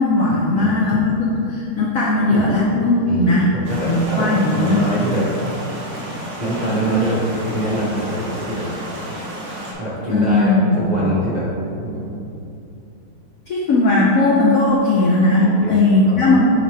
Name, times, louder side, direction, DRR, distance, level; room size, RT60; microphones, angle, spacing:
voice 1, 0.0-3.5 3.8-4.8 10.1-11.1 13.5-16.4, left 2 dB, 85° left, -4 dB, 0.7 m, -17 dB
voice 2, 3.1-5.2 6.4-8.6 9.8-12.2 15.4-16.3, equal, 35° right, -9 dB, 0.7 m, -24 dB
sound 1, 3.6-9.7, right 1 dB, 80° right, 2.3 m, -32 dB
8.9 x 4.4 x 3.3 m, 2.7 s
omnidirectional pair, 2.4 m